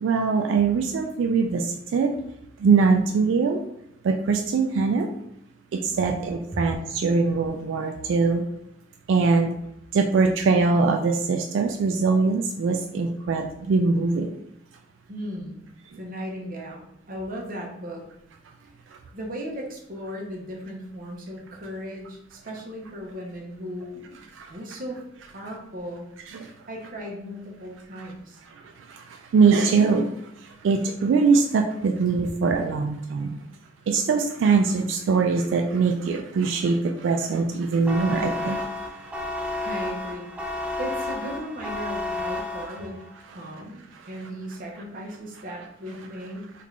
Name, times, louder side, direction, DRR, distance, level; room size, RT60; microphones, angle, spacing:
voice 1, 0.0-2.1 2.6-3.6 4.0-5.1 5.7-8.4 9.1-9.5 9.9-14.3 24.4-24.5 26.3-26.5 28.6-30.1 30.4-33.4 33.9-39.1 39.4-39.6, right 4 dB, 85° right, 4 dB, 0.3 m, -22 dB
voice 2, 15.1-15.6 15.9-18.1 19.1-24.2 24.5-25.0 25.3-26.1 26.3-28.4 39.6-43.0 43.3-46.5, equal, 50° right, 0 dB, 0.8 m, -37 dB
sound 1, 37.9-43.1, left 2 dB, 5° right, 0.3 m, -31 dB
3.5 x 2.4 x 3.2 m, 0.80 s
head